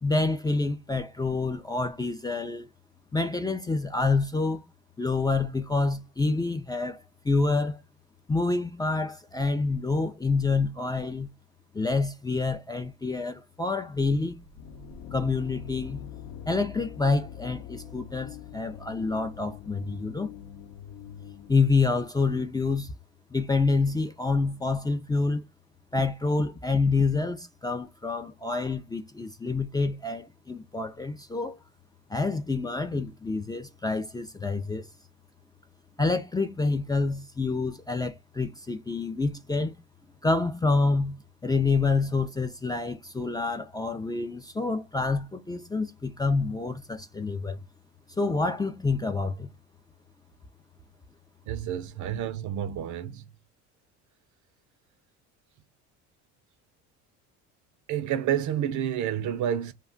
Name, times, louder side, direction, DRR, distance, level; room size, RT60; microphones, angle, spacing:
voice 1, 0.0-2.7 3.1-4.6 5.0-7.8 8.3-11.3 11.7-14.4 15.1-16.1 16.5-20.3 21.5-22.9 23.3-25.4 25.9-31.6 32.1-34.9 36.0-39.7 40.2-47.6 48.2-49.5, left 3 dB, 10° left, 0.4 m, -27 dB
sound 1, 14.3-22.1, left 8 dB, 70° left, 0.8 m, -43 dB
voice 2, 51.5-53.2 57.9-59.7, right 10 dB, 55° right, 0.6 m, -29 dB
2.3 x 2.3 x 3.7 m
supercardioid pair, 85°, 36 cm